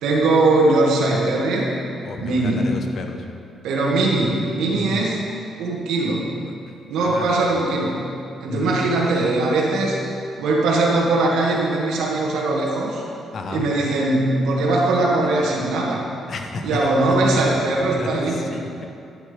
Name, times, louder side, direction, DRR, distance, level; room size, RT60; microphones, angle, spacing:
voice 1, 0.0-1.7 2.2-2.7 3.6-5.2 5.6-6.3 6.9-8.0 8.4-10.0 10.4-13.0 13.5-16.1 16.6-18.4, right 2 dB, 85° right, -3 dB, 2.3 m, -20 dB
voice 2, 2.0-3.2 4.7-5.0 6.7-7.5 8.5-8.8 13.3-13.6 16.3-16.9 18.0-18.9, left 3 dB, 55° left, 4 dB, 1.2 m, -32 dB
11.5 x 11.5 x 3.6 m, 2.6 s
cardioid pair, 90°, 0 cm